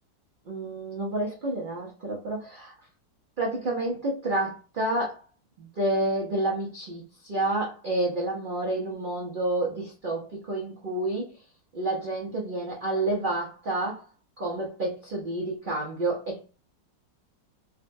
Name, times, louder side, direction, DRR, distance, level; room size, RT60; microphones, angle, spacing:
voice 1, 0.5-2.7 3.4-5.2 5.6-11.4 11.7-14.0 14.4-16.5, right 2 dB, 75° right, 0.4 m, -29 dB
3.7 x 2.2 x 2.5 m
omnidirectional pair, 2.0 m